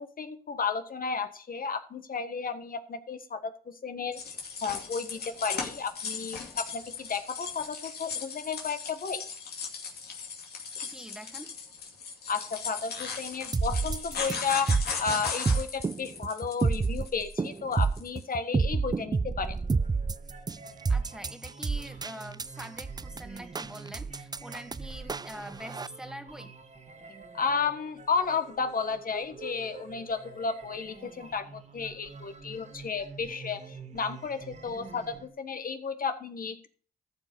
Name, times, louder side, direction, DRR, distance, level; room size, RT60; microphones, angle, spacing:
voice 1, 0.0-4.3 4.6-9.2 12.3-19.5 27.3-36.7, left 5 dB, 60° left, 1.4 m, -33 dB
sound 1, 4.1-18.2, left 5 dB, 85° left, 2.5 m, -37 dB
voice 2, 10.8-11.5 20.9-26.5, equal, 5° right, 1.6 m, -44 dB
sound 2, 13.5-25.9, right 4 dB, 25° right, 0.4 m, -29 dB
sound 3, 19.4-35.3, right 4 dB, 45° right, 1.8 m, -47 dB
14.0 x 5.2 x 5.3 m
cardioid pair, 65°, 16 cm